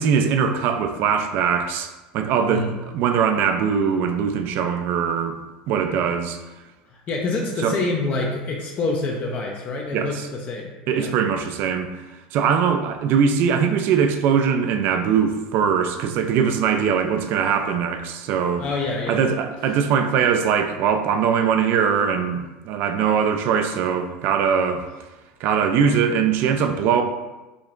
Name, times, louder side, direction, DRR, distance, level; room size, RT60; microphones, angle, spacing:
voice 1, 0.0-5.4 5.7-6.4 7.6-7.8 9.9-10.3 10.9-12.0 12.3-18.6 19.1-24.8 25.4-27.0, right 7 dB, 55° right, 0.4 m, -21 dB
voice 2, 6.9-11.1 18.6-19.4, left 3 dB, 35° left, 0.6 m, -27 dB
4.9 x 2.8 x 2.5 m
supercardioid pair, 120°, 4 cm